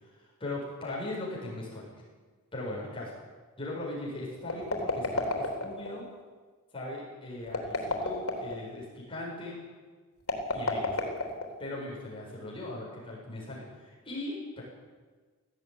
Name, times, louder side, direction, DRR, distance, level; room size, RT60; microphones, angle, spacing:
voice 1, 0.2-2.0 2.5-3.1 3.6-6.0 6.7-9.6 10.5-11.0 11.6-14.6, left 2 dB, 25° left, -5 dB, 7.5 m, -39 dB
sound 1, 4.4-5.9 7.4-8.6 10.2-11.7, left 2 dB, 85° left, 3.8 m, -31 dB
19.0 x 14.5 x 9.7 m, 1.4 s
head